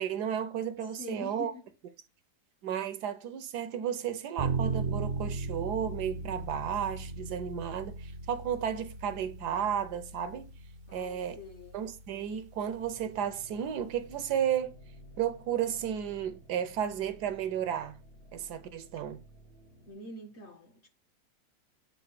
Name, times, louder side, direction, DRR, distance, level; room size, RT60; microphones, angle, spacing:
voice 1, 0.0-1.5 2.6-10.5 10.9-11.4 11.7-14.7 15.2-18.0 18.3-19.2, right 9 dB, 75° right, 1.2 m, -33 dB
voice 2, 0.8-1.7 10.9-11.8 19.9-20.9, left 3 dB, 45° left, 1.1 m, -45 dB
sound 1, 4.4-14.1, right 3 dB, 55° right, 0.6 m, -38 dB
sound 2, 12.7-19.9, equal, 65° left, 3.1 m, -54 dB
7.8 x 2.6 x 4.7 m
omnidirectional pair, 1.9 m